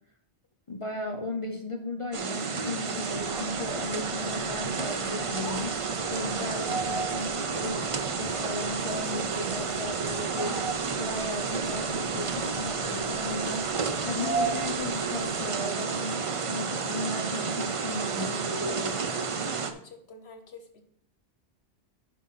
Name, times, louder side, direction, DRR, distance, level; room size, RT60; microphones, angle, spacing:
voice 1, 0.7-7.8 8.2-10.7 11.0-19.1, left 2 dB, 30° left, 3 dB, 0.8 m, -36 dB
sound 1, 2.1-19.7, right 5 dB, 40° right, 0.5 m, -31 dB
sound 2, 3.1-15.6, right 3 dB, 5° right, 0.8 m, -39 dB
voice 2, 19.6-20.8, left 4 dB, 65° left, 6 dB, 1.3 m, -48 dB
10.5 x 3.7 x 5.7 m, 0.68 s
omnidirectional pair, 1.1 m